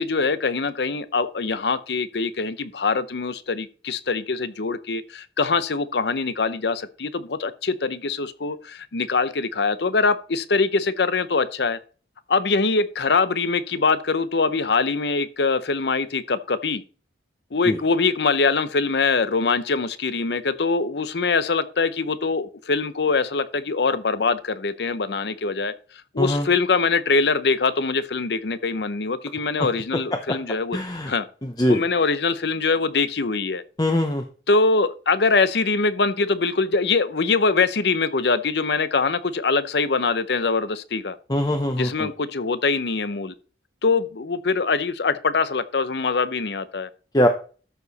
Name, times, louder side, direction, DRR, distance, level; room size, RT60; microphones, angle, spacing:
voice 1, 0.0-11.8 12.3-16.8 17.5-25.7 26.1-30.8 31.1-31.3 31.7-33.6 34.5-41.2 41.8-43.3 43.8-46.9, left 4 dB, 70° left, 0.7 m, -23 dB
voice 2, 30.7-31.1 31.4-31.8 33.8-34.2 41.3-42.1 47.1-47.3, left 1 dB, 20° left, 0.7 m, -22 dB
13.0 x 4.8 x 4.1 m
head